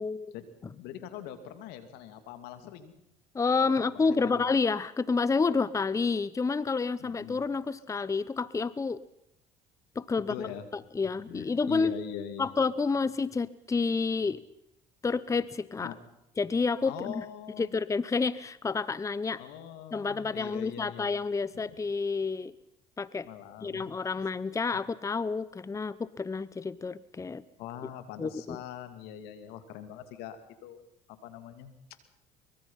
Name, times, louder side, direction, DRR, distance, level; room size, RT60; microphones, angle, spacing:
voice 1, 0.3-3.0 3.6-4.4 7.0-7.4 10.2-10.7 11.0-12.5 15.8-16.0 16.8-17.7 19.4-21.1 21.5-21.8 23.2-23.9 27.6-30.8 31.1-31.7, left 10 dB, 80° left, 9 dB, 2.6 m, -43 dB
voice 2, 3.3-9.0 10.0-10.5 10.7-12.0 12.4-14.4 15.0-15.9 16.4-17.2 17.6-19.4 19.9-22.5 23.0-23.3 23.6-27.4 28.2-28.6, left 4 dB, 20° left, 18 dB, 0.7 m, -29 dB
23.5 x 22.0 x 5.7 m, 0.80 s
supercardioid pair, 80°, 16 cm